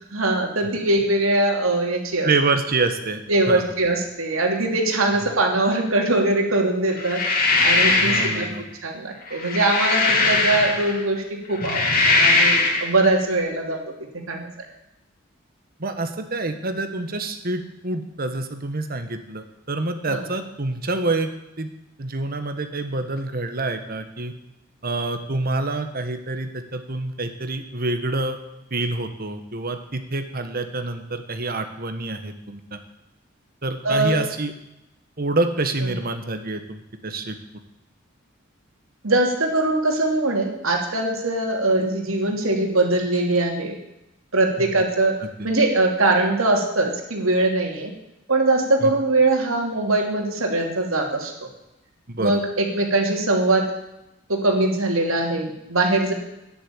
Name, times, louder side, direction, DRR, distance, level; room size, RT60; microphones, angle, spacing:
voice 1, 0.1-2.3 3.3-8.5 8.8-13.8 14.3-14.7 20.1-20.2 33.8-34.2 39.0-43.7 44.3-45.2 45.4-47.9 48.3-51.3 52.2-53.7 54.3-56.1, right 2 dB, 90° right, 2 dB, 3.0 m, -22 dB
voice 2, 2.2-3.2 3.5-3.6 8.0-8.6 15.8-21.3 21.6-21.7 22.0-24.3 24.8-28.4 28.7-32.8 33.6-34.5 35.2-37.4 44.6-44.7 45.2-45.3 48.8-48.9 52.1-52.4, right 2 dB, 45° right, 8 dB, 1.3 m, -27 dB
sound 1, 7.0-8.5 9.3-11.0 11.5-12.9, left 3 dB, 45° left, 2.6 m, -20 dB
11.5 x 10.5 x 8.6 m, 0.90 s
head